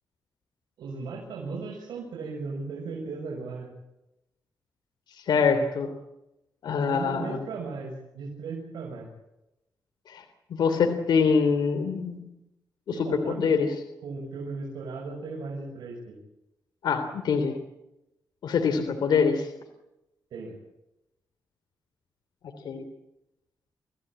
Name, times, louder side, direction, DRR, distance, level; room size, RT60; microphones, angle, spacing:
voice 1, 0.8-3.7 5.5-5.7 6.8-9.1 12.9-13.7 14.0-16.2 20.3-20.6, right 4 dB, 90° right, -2 dB, 6.8 m, -37 dB
voice 2, 5.3-5.9 6.6-7.4 10.1-10.2 10.5-12.2 12.9-13.7 16.8-17.6 18.4-19.5 22.6-22.8, left 5 dB, 80° left, 7 dB, 3.2 m, -24 dB
28.0 x 16.5 x 8.9 m, 0.90 s
cardioid pair, 85°, 7 cm